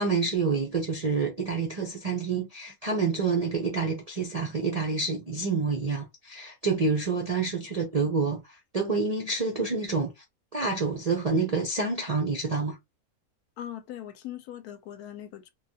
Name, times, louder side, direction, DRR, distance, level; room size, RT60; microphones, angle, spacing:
voice 1, 0.0-10.2 10.5-12.8, right 4 dB, 55° right, 0.4 m, -28 dB
voice 2, 13.6-15.5, left 11 dB, 80° left, 1.1 m, -40 dB
3.2 x 2.3 x 2.7 m
omnidirectional pair, 1.6 m